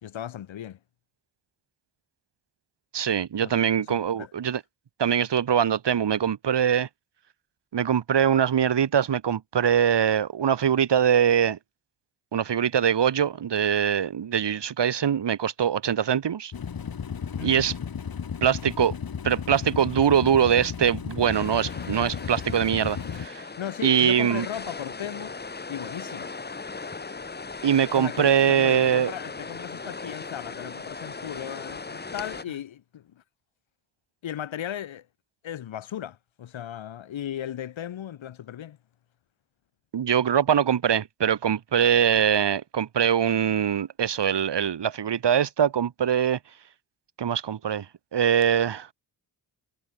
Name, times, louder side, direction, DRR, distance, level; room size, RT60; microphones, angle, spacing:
voice 1, 0.0-0.8 3.4-3.5 3.8-4.3 17.4-17.5 23.6-25.4 25.7-26.3 27.9-33.2 34.2-35.1 35.4-38.8, left 10 dB, 90° left, 3.0 m, -36 dB
voice 2, 2.9-4.6 5.0-6.9 7.7-11.6 12.3-16.5 17.4-17.7 18.4-18.9 19.2-23.4 23.8-24.5 27.6-29.1 39.9-46.4 47.2-47.9 48.1-48.9, right 8 dB, 65° right, 2.6 m, -23 dB
sound 1, 16.5-23.3, left 7 dB, 50° left, 2.5 m, -34 dB
sound 2, 21.3-32.4, left 4 dB, 20° left, 1.3 m, -38 dB
cardioid pair, 95°, 45 cm